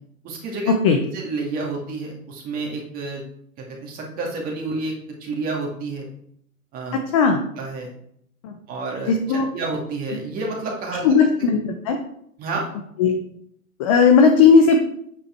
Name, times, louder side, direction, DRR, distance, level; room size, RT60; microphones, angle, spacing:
voice 1, 0.2-0.8 1.1-3.2 3.6-4.9 5.2-6.1 6.7-7.0 7.6-7.9 8.7-11.1 12.4-12.7, right 3 dB, 20° right, -1 dB, 2.3 m, -29 dB
voice 2, 11.0-12.0 13.0-13.2 13.8-14.8, left 5 dB, 20° left, 4 dB, 0.8 m, -15 dB
8.9 x 8.8 x 4.5 m, 0.69 s
hypercardioid pair, 140°, 46 cm